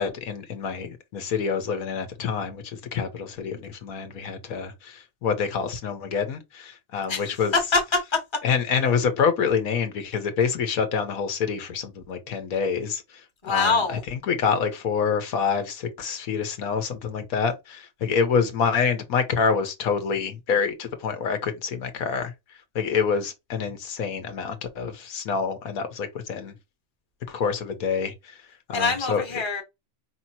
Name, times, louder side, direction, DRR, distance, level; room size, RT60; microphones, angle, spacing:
voice 1, 0.0-7.5 8.4-26.6 27.3-29.2, left 6 dB, 85° left, 1.4 m, -27 dB
voice 2, 7.7-8.2 13.4-14.0 28.7-29.6, left 4 dB, 20° left, 1.1 m, -24 dB
5.1 x 2.9 x 2.7 m
omnidirectional pair, 1.5 m